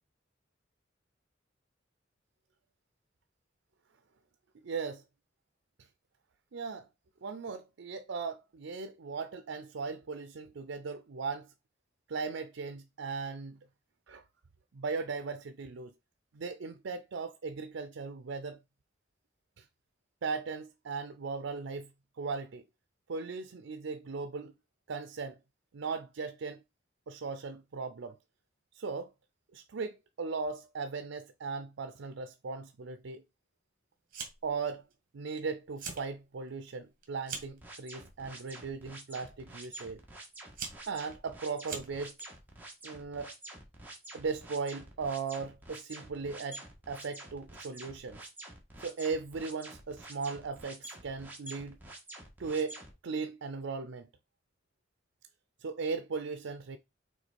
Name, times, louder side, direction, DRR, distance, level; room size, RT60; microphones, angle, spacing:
voice 1, 4.6-5.0 6.5-6.8 7.2-11.5 12.1-13.6 14.1-14.2 14.7-15.9 16.3-18.6 19.6-19.7 20.2-21.9 22.2-22.6 23.1-24.5 24.9-25.4 25.7-26.6 27.1-28.2 28.7-29.1 29.5-33.2 34.4-34.8 35.1-40.0 40.9-42.1 42.8-43.3 44.1-46.6 46.9-48.2 48.8-51.8 52.4-54.1 55.6-56.8, right 4 dB, 80° right, 0.5 m, -37 dB
Fire, 34.1-34.6 34.9-35.4 35.7-36.1 36.5-37.6 38.4-38.7 39.6-39.7 40.3-42.2, right 6 dB, 50° right, 1.7 m, -42 dB
sound 1, 37.6-52.9, right 2 dB, 10° right, 1.6 m, -48 dB
5.9 x 3.7 x 4.3 m
head